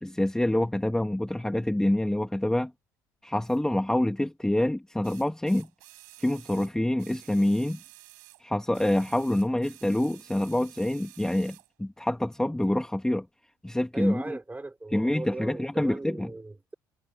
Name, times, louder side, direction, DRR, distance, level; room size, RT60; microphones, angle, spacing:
voice 1, 0.0-2.7 3.2-5.7 6.2-7.8 8.4-13.3 13.6-14.2 14.9-16.3, left 1 dB, 5° left, 2.0 m, -26 dB
sound 1, 3.4-3.6 5.0-8.4 8.7-11.7 12.6-12.7, right 22 dB, 80° right, 4.3 m, -52 dB
voice 2, 13.9-16.7, right 2 dB, 15° right, 5.2 m, -37 dB
hypercardioid pair, 60°, 10 cm